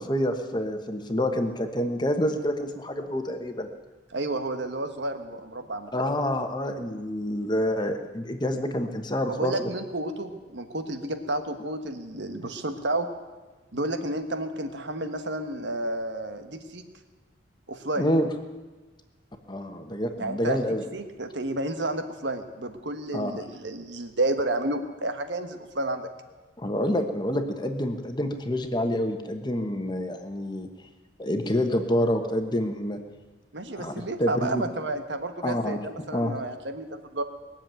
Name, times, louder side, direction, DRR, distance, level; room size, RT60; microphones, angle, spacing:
voice 1, 0.0-3.7 5.9-9.7 18.0-18.3 19.5-20.8 23.1-23.3 26.6-30.7 31.2-33.0 33.7-33.9 34.2-34.6 35.4-35.9 36.1-36.3, left 1 dB, 25° left, 6 dB, 1.2 m, -27 dB
voice 2, 4.1-6.1 9.3-13.1 13.7-16.8 17.7-18.1 20.2-20.6 20.9-26.1 33.5-37.2, right 2 dB, 70° right, 7 dB, 1.4 m, -31 dB
21.0 x 7.4 x 9.0 m, 1.2 s
head